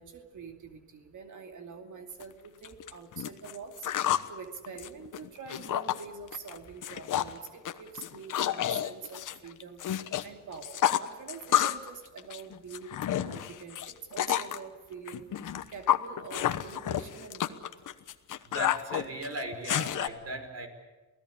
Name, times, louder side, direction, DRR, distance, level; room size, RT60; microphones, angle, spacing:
voice 1, 0.0-3.9 4.3-9.8 10.2-12.9 13.2-17.6, right 5 dB, 75° right, 4 dB, 2.5 m, -45 dB
sound 1, 2.2-2.3 2.6-4.3 4.6-6.0 6.3-6.6 6.8-7.4 7.7-10.2 10.5-11.9 12.2-14.6 15.1-20.1, left 11 dB, 80° left, 1.2 m, -30 dB
voice 2, 18.4-20.7, right 1 dB, 55° right, 6 dB, 5.2 m, -37 dB
28.5 x 17.5 x 8.6 m, 1.2 s
cardioid pair, 80°, 30 cm